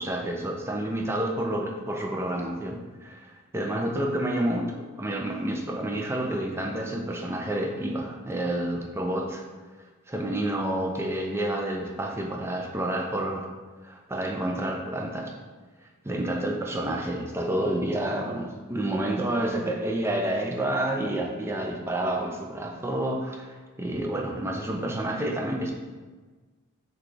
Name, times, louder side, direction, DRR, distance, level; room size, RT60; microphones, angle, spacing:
voice 1, 0.0-9.4 10.1-13.5 13.8-15.4 16.0-25.7, right 1 dB, 10° right, 1 dB, 0.4 m, -29 dB
5.9 x 2.3 x 3.2 m, 1.3 s
head